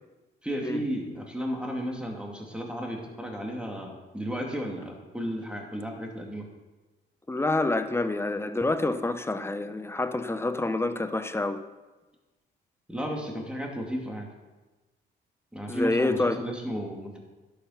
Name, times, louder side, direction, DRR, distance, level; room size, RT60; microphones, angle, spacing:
voice 1, 0.4-6.5 12.9-14.3 15.5-17.2, equal, 5° right, 1 dB, 2.6 m, -33 dB
voice 2, 7.3-11.6 15.7-16.4, left 2 dB, 10° left, 10 dB, 0.8 m, -27 dB
11.0 x 7.0 x 5.8 m, 1.2 s
cardioid pair, 90°, 20 cm